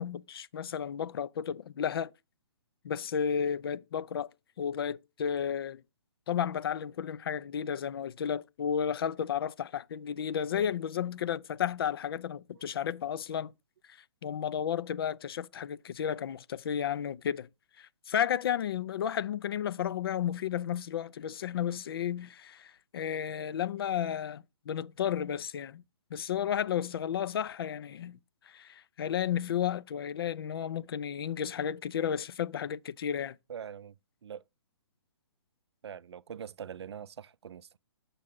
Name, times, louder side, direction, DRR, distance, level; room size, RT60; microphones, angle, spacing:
voice 1, 0.0-2.1 2.8-4.3 4.6-5.8 6.3-13.5 14.2-17.5 17.8-25.8 26.1-28.2 28.5-33.4, left 8 dB, 60° left, 0.4 m, -33 dB
voice 2, 33.5-34.0 34.2-34.5 35.8-37.8, right 8 dB, 75° right, 0.4 m, -43 dB
7.4 x 6.6 x 3.6 m
hypercardioid pair, 140°, 14 cm